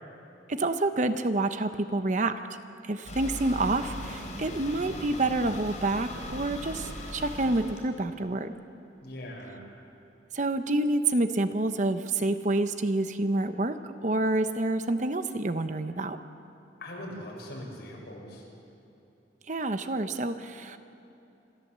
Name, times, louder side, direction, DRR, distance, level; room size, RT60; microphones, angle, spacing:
voice 1, 0.5-2.4 2.8-8.5 10.3-16.2 19.5-20.8, right 2 dB, 40° right, 9 dB, 0.8 m, -28 dB
sound 1, 3.1-7.9, left 1 dB, 40° left, 3.8 m, -39 dB
voice 2, 9.0-9.7 16.8-18.4, left 1 dB, 60° left, -2 dB, 5.7 m, -41 dB
26.5 x 13.5 x 7.5 m, 2.9 s
head